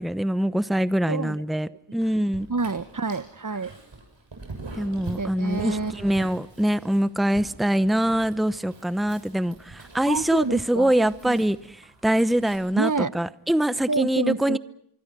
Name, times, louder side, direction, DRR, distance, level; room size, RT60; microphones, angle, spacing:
voice 1, 0.0-2.5 4.7-14.6, right 1 dB, ahead, 14 dB, 0.9 m, -24 dB
Dog, 2.0-12.6, right 3 dB, 80° right, 7.2 m, -44 dB
voice 2, 2.5-3.7 5.2-5.9 10.1-10.9 11.2-11.4 12.8-13.1 13.9-14.6, right 4 dB, 45° right, 14 dB, 1.0 m, -28 dB
26.0 x 24.5 x 6.1 m, 0.68 s
cardioid pair, 40°, 44 cm